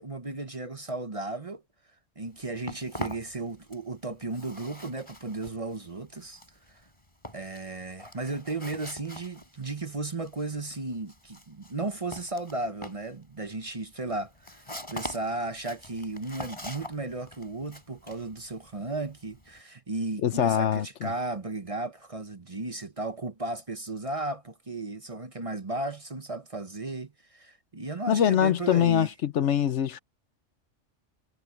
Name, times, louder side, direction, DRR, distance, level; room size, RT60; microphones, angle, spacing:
voice 1, 0.0-1.6 2.2-6.4 6.7-6.8 7.3-29.1, right 2 dB, 30° right, 1.0 m, -35 dB
Walk footsteps, 2.2-4.0 4.2-19.6, left 1 dB, 25° left, 6.1 m, -43 dB
voice 2, 20.2-21.1 28.1-30.0, left 9 dB, 70° left, 1.0 m, -24 dB
omnidirectional pair, 1.3 m